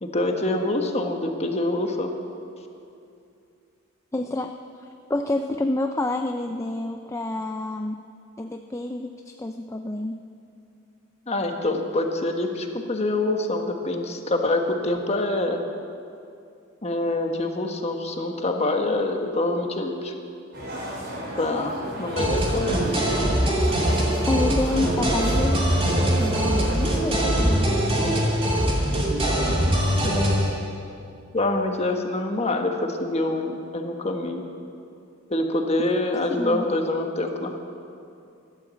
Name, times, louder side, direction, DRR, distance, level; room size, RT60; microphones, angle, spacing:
voice 1, 0.0-2.1 11.3-15.6 16.8-20.1 21.3-22.9 30.0-30.4 31.3-34.4 35.3-37.5, left 2 dB, 30° left, 4 dB, 1.4 m, -25 dB
voice 2, 4.1-4.5 5.1-8.0 8.4-10.2 24.3-28.2 36.4-36.6, left 2 dB, 15° left, 5 dB, 0.4 m, -28 dB
sound 1, 20.5-27.0, right 1 dB, 60° right, 4.7 m, -34 dB
sound 2, 22.2-30.5, equal, 25° right, 2.5 m, -22 dB
15.5 x 12.0 x 7.6 m, 2.6 s
head